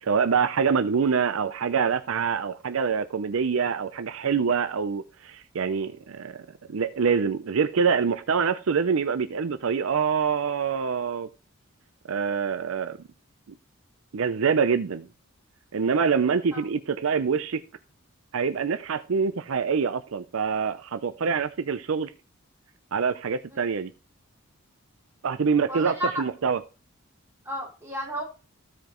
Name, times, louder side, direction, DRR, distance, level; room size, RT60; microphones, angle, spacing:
voice 1, 0.0-11.3 12.1-13.0 14.1-15.1 15.7-17.6 18.3-22.1 22.9-23.9 25.2-26.6, right 6 dB, 75° right, 11 dB, 0.5 m, -25 dB
voice 2, 25.7-26.2 27.4-28.2, equal, 10° right, -3 dB, 3.1 m, -32 dB
15.0 x 5.0 x 3.0 m, 0.31 s
head